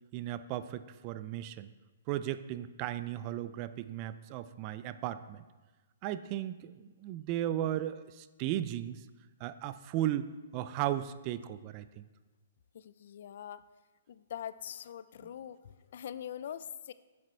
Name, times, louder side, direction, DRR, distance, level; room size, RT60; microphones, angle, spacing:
voice 1, 0.1-1.7 2.1-5.4 6.0-9.0 9.4-12.0, right 12 dB, 30° right, 13 dB, 0.4 m, -36 dB
voice 2, 12.7-13.6 14.1-16.9, left 9 dB, 60° left, 15 dB, 0.4 m, -43 dB
7.7 x 7.6 x 4.3 m, 1.2 s
hypercardioid pair, 150°, 0 cm